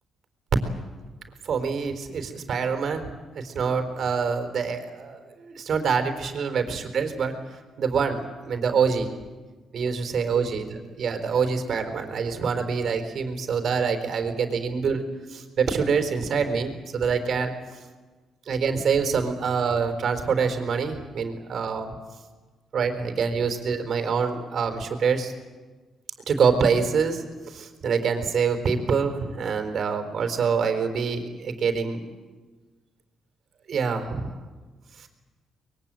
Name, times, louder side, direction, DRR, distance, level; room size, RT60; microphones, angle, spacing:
voice 1, 1.4-7.3 7.8-9.1 9.7-15.0 15.3-17.5 18.5-21.9 22.7-25.3 26.3-32.0 33.7-34.3 35.0-35.1, right 5 dB, 60° right, 7 dB, 4.3 m, -25 dB
24.5 x 22.0 x 9.1 m, 1.3 s
cardioid pair, 90°, 0 cm